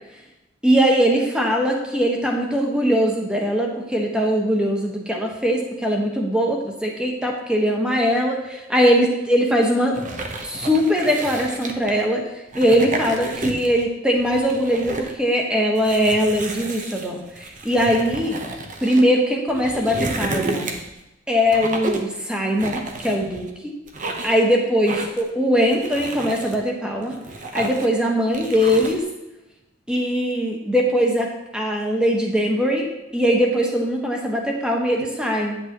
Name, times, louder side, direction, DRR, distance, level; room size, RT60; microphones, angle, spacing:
voice 1, 0.6-10.0 10.4-12.2 12.5-18.4 18.8-20.7 21.3-23.7 24.2-27.1 27.5-29.0 29.9-35.6, equal, 5° right, 0 dB, 1.3 m, -21 dB
sound 1, 9.9-12.0 12.5-13.8 14.2-15.2 15.8-19.0 19.5-21.0 21.5-22.1 22.6-23.5 23.9-24.4 24.9-25.3 25.7-26.6 27.0-28.0 28.3-29.0, right 2 dB, 40° right, 0.9 m, -31 dB
8.7 x 8.3 x 3.0 m, 0.97 s
head